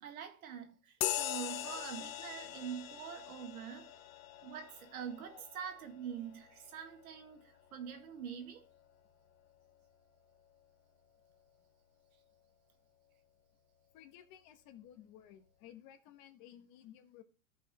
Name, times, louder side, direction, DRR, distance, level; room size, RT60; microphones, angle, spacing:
voice 1, 0.0-3.9 4.4-8.6, right 8 dB, 85° right, 1.9 m, -45 dB
sound 1, 1.0-8.9, left 13 dB, 75° left, 0.9 m, -42 dB
voice 2, 13.9-17.2, left 11 dB, 45° left, 1.4 m, -56 dB
15.0 x 5.3 x 3.0 m
supercardioid pair, 135°, 42 cm